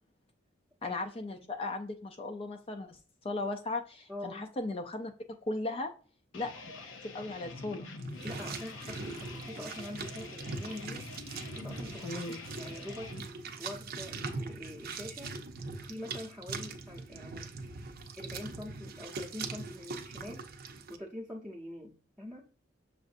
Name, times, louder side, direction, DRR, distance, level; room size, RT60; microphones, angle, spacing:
voice 1, 0.8-3.0 3.2-5.9 6.3-6.7 7.0-7.9 12.0-12.4, left 2 dB, 30° left, 0.4 m, -37 dB
voice 2, 4.1-4.5 8.2-11.1 11.5-12.2 12.5-13.2 13.6-15.3 15.8-17.5 18.2-20.5 20.9-22.5, left 1 dB, 5° right, 0.7 m, -44 dB
sound 1, 6.3-13.2, left 3 dB, 90° left, 0.7 m, -46 dB
sound 2, 8.0-21.0, right 4 dB, 50° right, 0.6 m, -41 dB
6.3 x 2.5 x 2.5 m
head